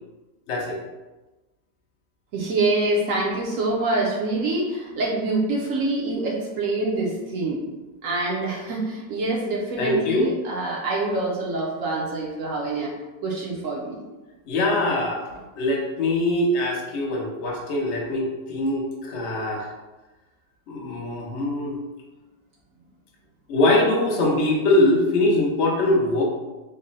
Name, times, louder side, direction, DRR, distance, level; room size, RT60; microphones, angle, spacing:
voice 1, 2.3-7.6 8.0-12.9 13.2-14.0, right 2 dB, 65° right, -3 dB, 0.8 m, -25 dB
voice 2, 9.8-10.3 14.5-19.7 20.7-21.8 23.5-26.2, left 1 dB, 70° left, -1 dB, 0.6 m, -22 dB
3.7 x 2.0 x 3.9 m, 1.1 s
omnidirectional pair, 1.9 m